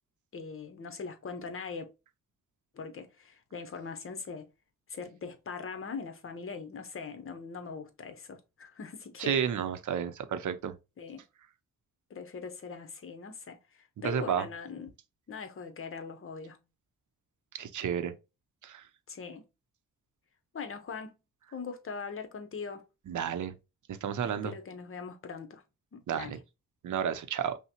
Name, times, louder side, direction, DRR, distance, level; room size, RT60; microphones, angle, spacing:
voice 1, 0.3-1.9 2.7-4.5 4.9-9.4 11.0-11.2 12.1-14.9 15.3-16.6 19.1-19.4 20.5-21.1 21.5-22.9 24.2-25.6 25.9-26.4, left 5 dB, 45° left, 0.8 m, -41 dB
voice 2, 9.2-10.8 14.0-14.5 17.5-18.1 18.6-18.8 23.1-23.5 23.9-24.5 26.1-26.4 26.8-27.6, right 8 dB, 70° right, 0.6 m, -31 dB
5.5 x 2.1 x 2.9 m
wide cardioid pair, 115°, 32 cm